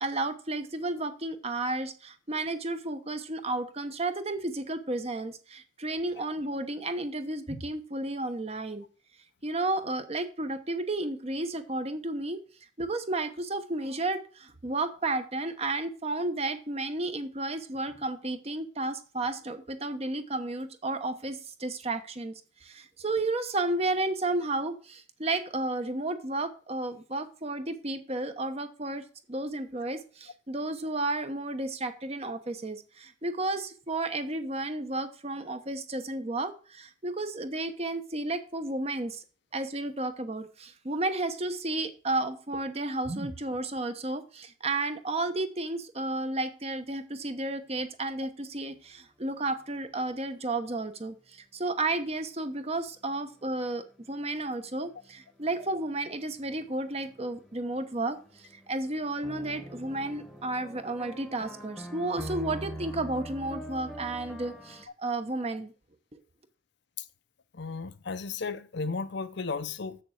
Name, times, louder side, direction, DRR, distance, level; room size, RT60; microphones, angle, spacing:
voice 1, 0.0-8.8 9.4-12.4 12.8-22.3 22.6-39.2 39.5-65.7, right 2 dB, 30° right, 0.9 m, -32 dB
sound 1, 50.5-50.6 53.0-64.9, equal, ahead, 1.1 m, -45 dB
voice 2, 67.5-70.0, left 4 dB, 60° left, 0.6 m, -34 dB
7.5 x 6.8 x 6.4 m
head